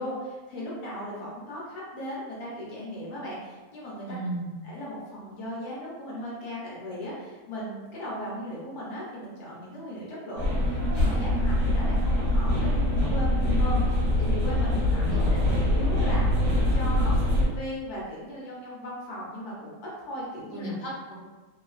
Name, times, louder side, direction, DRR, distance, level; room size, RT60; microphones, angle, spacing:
voice 1, 0.0-4.2 4.6-16.3 16.7-20.7, equal, 70° left, -6 dB, 1.3 m, -37 dB
voice 2, 4.1-4.6 14.9-15.5 20.5-21.1, right 1 dB, 40° left, -7 dB, 0.9 m, -34 dB
sound 1, 10.4-17.5, left 1 dB, 55° right, 1.3 m, -24 dB
3.0 x 2.3 x 2.3 m, 1.2 s
omnidirectional pair, 1.8 m